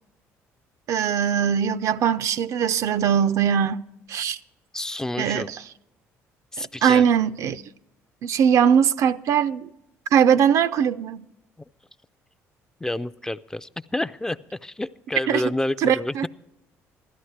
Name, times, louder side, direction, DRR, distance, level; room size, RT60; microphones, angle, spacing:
voice 1, 0.9-3.8 4.1-4.4 5.2-5.6 6.8-7.6 8.2-9.7 10.1-11.2 15.3-15.4 15.8-16.3, right 8 dB, 60° right, 0.4 m, -21 dB
voice 2, 4.7-5.5 6.5-7.0 12.8-16.3, left 1 dB, 10° left, 0.4 m, -29 dB
16.0 x 12.5 x 3.2 m
supercardioid pair, 85°, 6 cm